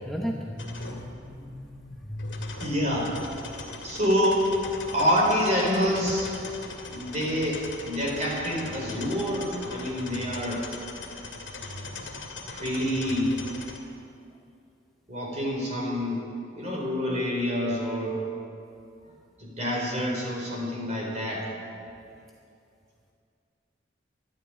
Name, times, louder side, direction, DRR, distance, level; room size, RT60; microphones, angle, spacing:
voice 1, 0.1-1.7 2.1-2.5, equal, ahead, -2 dB, 0.9 m, -35 dB
sound 1, 0.6-13.8, left 3 dB, 85° left, 2.1 m, -40 dB
voice 2, 2.6-3.1 3.8-4.5 4.9-6.3 6.9-10.7 12.5-13.3 15.1-16.2 16.5-18.2 19.4-21.5, equal, 40° right, -2 dB, 4.2 m, -27 dB
13.0 x 11.5 x 8.8 m, 2.5 s
head